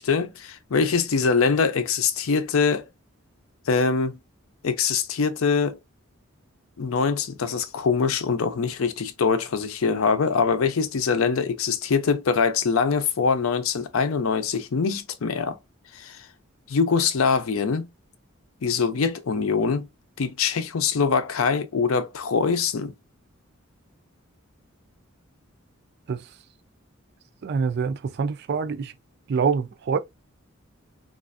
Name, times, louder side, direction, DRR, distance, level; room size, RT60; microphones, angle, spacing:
voice 1, 0.0-2.9 3.7-4.2 4.6-5.8 6.8-15.6 15.9-16.3 16.7-17.9 18.6-19.9 20.2-22.9, left 5 dB, 75° left, 0.5 m, -23 dB
voice 2, 27.4-28.9 29.3-30.0, right 5 dB, 50° right, 0.3 m, -25 dB
3.2 x 2.4 x 2.4 m
head